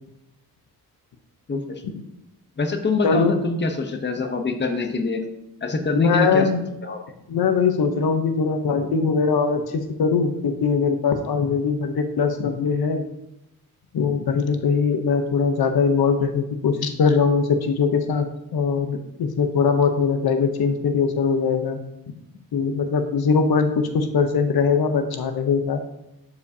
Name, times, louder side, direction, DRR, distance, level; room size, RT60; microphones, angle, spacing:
voice 1, 1.5-1.8 2.6-5.2 5.6-6.4 6.8-7.0, left 3 dB, 30° left, 5 dB, 0.9 m, -24 dB
voice 2, 3.0-3.4 5.9-6.6 7.3-13.0 13.9-18.3 18.5-21.8 22.5-25.8, left 5 dB, 90° left, 7 dB, 0.8 m, -21 dB
11.5 x 5.0 x 2.8 m, 0.87 s
wide cardioid pair, 120°, 36 cm